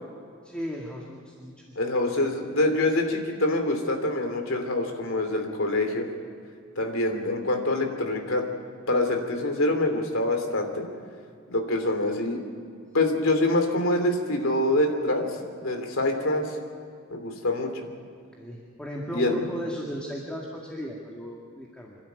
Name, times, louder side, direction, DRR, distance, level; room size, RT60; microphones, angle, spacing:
voice 1, 0.4-1.6 2.1-2.3 18.3-22.0, equal, 5° left, -2 dB, 2.0 m, -36 dB
voice 2, 1.7-6.1 6.8-8.4 8.9-10.9 11.5-12.4 12.9-16.5 17.1-17.7 19.1-19.4, left 2 dB, 80° left, 4 dB, 3.0 m, -25 dB
27.0 x 12.0 x 9.3 m, 2.3 s
head